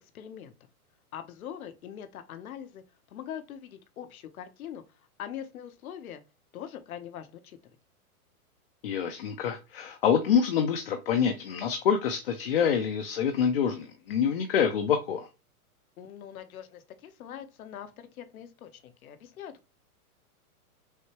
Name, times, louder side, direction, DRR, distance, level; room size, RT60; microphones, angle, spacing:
voice 1, 0.1-0.5 1.1-2.8 3.1-4.8 5.2-6.2 6.5-7.6 16.0-19.7, left 9 dB, 65° left, 1.0 m, -42 dB
voice 2, 8.8-15.3, left 7 dB, 40° left, 0.5 m, -26 dB
6.3 x 2.2 x 3.0 m
hypercardioid pair, 165°, 45 cm